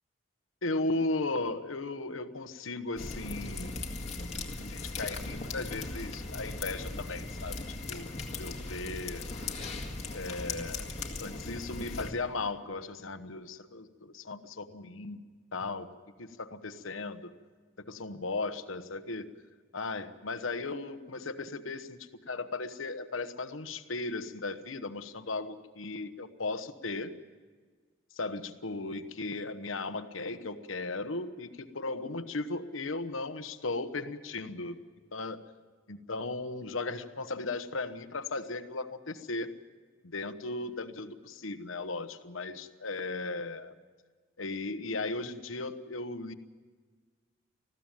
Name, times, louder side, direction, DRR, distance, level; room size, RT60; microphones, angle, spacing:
voice 1, 0.6-3.8 4.6-7.6 7.9-9.2 10.1-10.9 11.2-15.2 15.5-15.9 16.2-17.3 17.8-19.3 19.7-27.1 28.1-34.8 35.1-35.4 35.9-39.5 40.0-43.7 44.4-46.3, left 3 dB, 90° left, 10 dB, 1.1 m, -36 dB
sound 1, 3.0-12.1, left 3 dB, 35° left, 2.0 m, -38 dB
20.5 x 15.0 x 9.1 m, 1.5 s
head